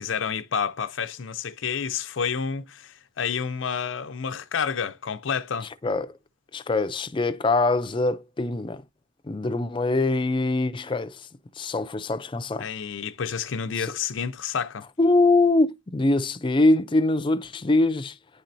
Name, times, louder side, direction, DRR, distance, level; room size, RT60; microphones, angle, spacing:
voice 1, 0.0-5.7 12.6-14.8, left 6 dB, 90° left, 0.5 m, -29 dB
voice 2, 5.8-6.2 6.5-8.8 9.2-11.3 11.6-12.7 13.8-14.0 15.0-18.2, left 2 dB, 25° left, 0.4 m, -23 dB
9.7 x 4.3 x 2.6 m
head